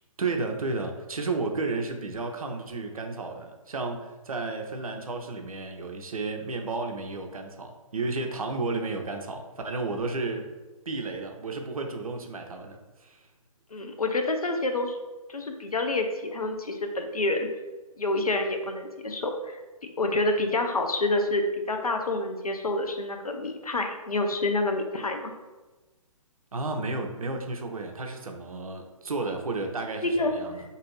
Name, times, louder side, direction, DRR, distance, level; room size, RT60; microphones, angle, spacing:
voice 1, 0.2-10.5 10.9-13.2 26.5-30.6, right 3 dB, 75° right, 4 dB, 0.5 m, -32 dB
voice 2, 13.7-15.0 15.3-17.5 18.0-19.6 20.0-25.3 30.0-30.3, left 2 dB, 85° left, 4 dB, 0.5 m, -28 dB
2.6 x 2.5 x 3.1 m, 1.2 s
figure-of-eight pair, 135°, 18 cm